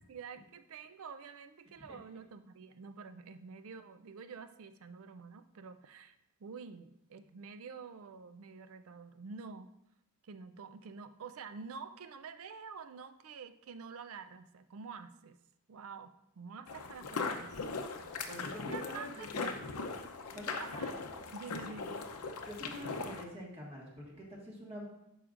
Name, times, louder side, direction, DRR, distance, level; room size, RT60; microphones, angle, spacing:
voice 1, 0.0-9.8 10.2-15.4 15.7-17.7 18.7-19.6 20.6-20.9 21.3-22.0, right 5 dB, 65° right, 10 dB, 0.4 m, -48 dB
sound 1, 16.7-23.2, left 4 dB, 85° left, 0.7 m, -39 dB
voice 2, 18.3-19.6 20.3-20.6 22.4-24.9, equal, 25° right, -3 dB, 1.6 m, -46 dB
11.5 x 5.0 x 2.5 m, 0.82 s
head